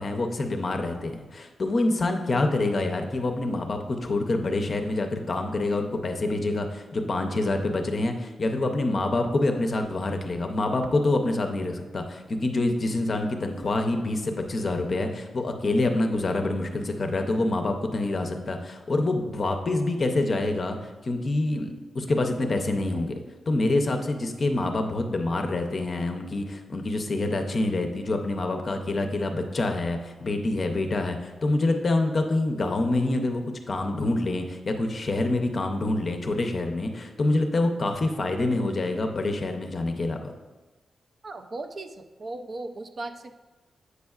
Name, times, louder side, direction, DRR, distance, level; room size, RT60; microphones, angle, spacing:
voice 1, 0.0-20.8 21.0-23.2 23.5-40.3, left 2 dB, 40° left, 5 dB, 0.5 m, -26 dB
voice 2, 41.2-43.3, right 2 dB, 40° right, 6 dB, 0.3 m, -37 dB
8.1 x 5.3 x 2.3 m, 1.2 s
wide cardioid pair, 150°, 0 cm